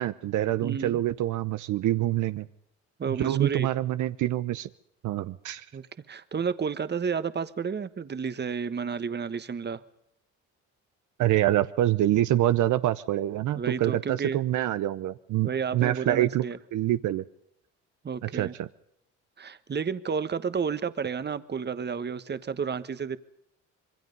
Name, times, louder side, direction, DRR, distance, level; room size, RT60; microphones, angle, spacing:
voice 1, 0.0-2.5 3.1-4.7 5.0-5.6 11.2-17.2 18.2-18.7, right 13 dB, 75° right, 13 dB, 0.8 m, -26 dB
voice 2, 0.6-1.0 3.0-3.7 5.7-9.8 13.5-14.4 15.4-16.6 18.0-18.5 19.4-23.2, right 6 dB, 35° right, 13 dB, 1.3 m, -31 dB
26.0 x 22.5 x 5.4 m, 0.74 s
cardioid pair, 90°, 30 cm